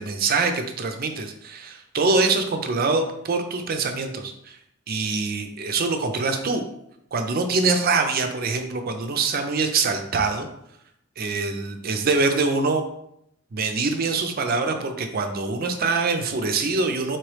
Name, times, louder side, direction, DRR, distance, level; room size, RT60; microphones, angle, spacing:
voice 1, 0.0-4.6 4.9-6.6 7.1-10.5 11.2-12.8 13.5-17.2, right 4 dB, 50° right, 6 dB, 0.5 m, -24 dB
4.3 x 3.0 x 3.2 m, 0.76 s
head